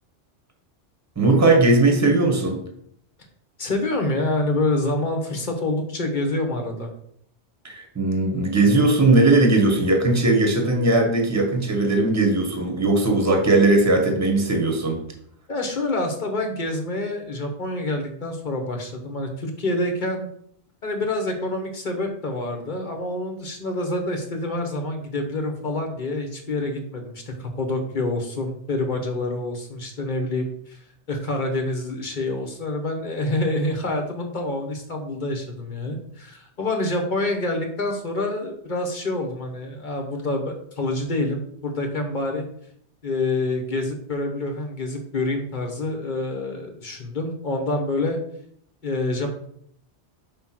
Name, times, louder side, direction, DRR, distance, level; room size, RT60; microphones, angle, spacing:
voice 1, 1.1-2.6 7.6-15.0, right 2 dB, 15° right, 2 dB, 1.2 m, -19 dB
voice 2, 3.6-6.9 15.5-20.3 20.8-30.8 31.1-42.5 43.0-48.2 48.8-49.3, left 2 dB, 45° left, 3 dB, 1.2 m, -27 dB
5.4 x 3.7 x 5.9 m, 0.69 s
omnidirectional pair, 1.2 m